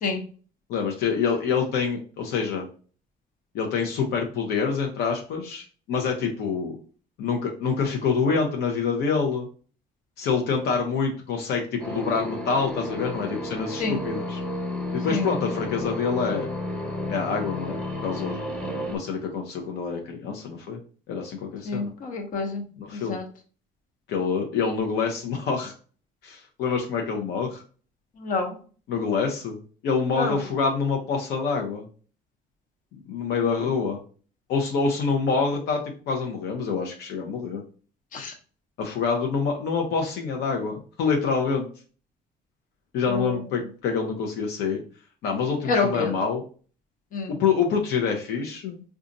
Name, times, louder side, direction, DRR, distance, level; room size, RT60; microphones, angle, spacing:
voice 1, 0.7-2.6 3.5-6.8 7.2-9.5 10.2-14.4 14.9-16.5 17.1-18.4 18.9-20.8 21.1-21.9 22.8-23.2 24.1-25.7 26.2-27.6 28.9-29.6 29.8-31.8 33.1-34.0 34.5-35.8 36.1-37.6 38.8-41.7 42.9-44.8 45.2-46.4 47.3-48.8, left 5 dB, 80° left, 2 dB, 0.7 m, -26 dB
sound 1, 11.8-19.0, left 1 dB, 5° left, 0.9 m, -32 dB
voice 2, 21.6-22.6 22.9-23.2 28.2-28.6 30.2-30.4 38.1-38.3 43.1-43.3 45.7-46.1 47.1-47.3, left 4 dB, 55° left, 4 dB, 0.9 m, -27 dB
3.9 x 2.4 x 2.6 m, 0.39 s
cardioid pair, 110°, 17 cm